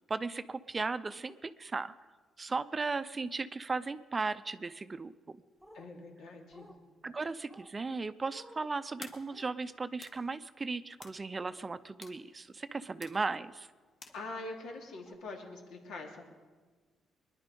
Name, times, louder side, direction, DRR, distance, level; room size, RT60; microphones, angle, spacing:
voice 1, 0.1-1.9 2.4-5.4 7.0-13.7, right 4 dB, 30° right, 13 dB, 0.5 m, -36 dB
sound 1, 5.6-5.9 6.5-6.8 7.5-7.7 8.3-8.7 9.3-9.5 11.5-11.7 12.6-12.8 14.1-14.2 15.1-15.2, equal, ahead, 1.6 m, -56 dB
voice 2, 5.7-6.7 14.1-16.3, left 2 dB, 75° left, 2 dB, 2.7 m, -44 dB
sound 2, 9.0-14.8, left 3 dB, 45° left, 1.7 m, -55 dB
21.5 x 10.5 x 5.3 m, 1.4 s
cardioid pair, 90°, 0 cm